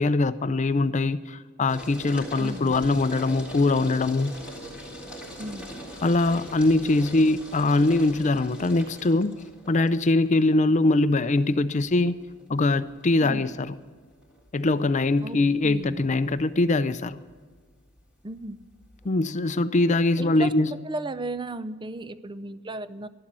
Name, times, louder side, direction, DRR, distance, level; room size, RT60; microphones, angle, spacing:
voice 1, 0.0-4.3 6.0-9.4 9.7-12.2 12.5-13.7 14.5-17.2 19.0-20.7, left 2 dB, 35° left, 0.5 m, -22 dB
sound 1, 1.7-19.1, equal, 5° right, 3.6 m, -43 dB
voice 2, 2.3-2.8 5.4-5.7 13.2-13.5 15.2-16.0 18.2-18.6 20.2-23.1, right 2 dB, 20° right, 0.5 m, -35 dB
13.0 x 11.5 x 6.1 m
head